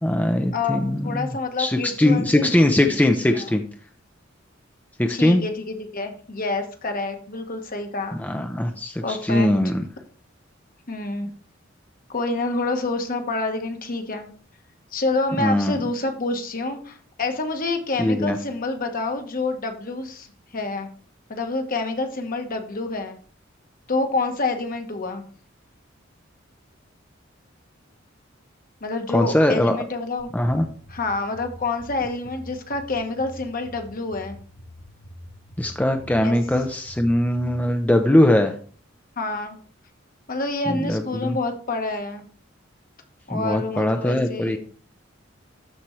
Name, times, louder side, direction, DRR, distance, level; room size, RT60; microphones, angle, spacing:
voice 1, 0.0-3.6 5.0-5.4 8.1-9.8 15.4-15.8 18.0-18.4 29.1-29.8 30.3-30.6 35.6-38.5 40.7-41.4 43.3-44.6, left 1 dB, 10° left, 5 dB, 0.5 m, -21 dB
voice 2, 0.5-2.5 3.3-3.5 5.1-8.2 9.0-9.7 10.9-11.3 12.1-14.3 14.9-20.3 20.5-20.9 21.3-23.2 23.9-25.2 28.8-30.3 30.9-34.4 36.2-36.4 39.2-39.6 40.3-42.2 43.3-44.6, left 3 dB, 45° left, 5 dB, 1.2 m, -27 dB
sound 1, 30.2-37.6, equal, 80° left, 3.1 m, -45 dB
13.0 x 4.4 x 3.1 m, 0.44 s
head